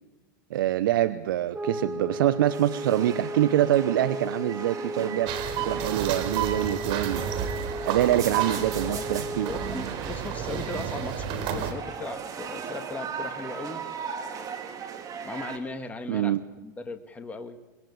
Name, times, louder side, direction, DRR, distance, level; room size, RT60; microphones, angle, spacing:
voice 1, 0.5-5.3 5.6-7.2 7.8-9.5 16.1-16.4, right 13 dB, 70° right, 13 dB, 1.0 m, -25 dB
sound 1, 1.5-9.9, equal, 10° right, 1.0 m, -35 dB
sound 2, 2.3-15.6, right 6 dB, 30° right, 3.9 m, -38 dB
sound 3, 5.3-11.7, right 9 dB, 50° right, 4.0 m, -32 dB
voice 2, 9.5-13.8 15.2-16.4 16.6-17.6, left 3 dB, 10° left, 6 dB, 2.0 m, -37 dB
26.0 x 22.0 x 8.6 m, 1.1 s
hypercardioid pair, 115°, 11 cm